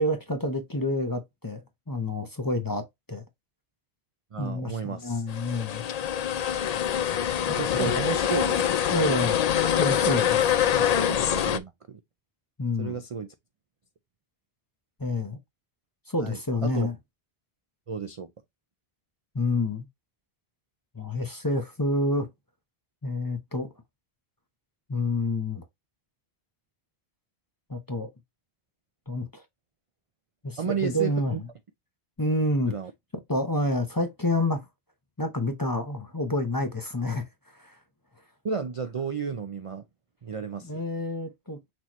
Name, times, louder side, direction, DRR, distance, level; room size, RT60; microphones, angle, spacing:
voice 1, 0.0-3.2 4.4-5.8 7.5-8.0 8.9-9.4 9.8-10.4 12.6-13.0 15.0-15.4 16.1-16.9 19.3-19.9 20.9-22.3 23.0-23.7 24.9-25.6 27.7-28.1 29.1-29.4 30.4-31.4 32.2-32.7 33.3-34.6 35.2-37.2 37.6-37.8 40.6-41.6, left 1 dB, 20° left, 0.7 m, -28 dB
voice 2, 4.3-5.2 7.6-8.6 10.1-10.2 11.1-12.0 12.8-13.3 16.2-16.9 17.9-18.3 30.6-31.4 32.7-32.9 38.4-39.8 40.2-40.8, right 6 dB, 45° right, 0.4 m, -33 dB
sound 1, 5.3-11.6, left 9 dB, 60° left, 0.4 m, -25 dB
6.1 x 2.9 x 3.0 m
omnidirectional pair, 1.1 m